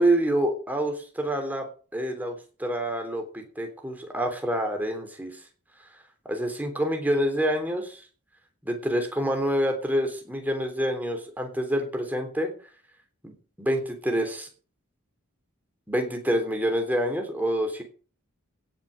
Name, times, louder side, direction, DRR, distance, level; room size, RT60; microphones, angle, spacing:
voice 1, 0.0-1.6 1.9-5.3 6.2-8.0 8.6-12.5 13.2-14.5 15.9-17.8, right 1 dB, 10° right, 4 dB, 3.4 m, -27 dB
17.0 x 6.3 x 6.6 m, 0.39 s
head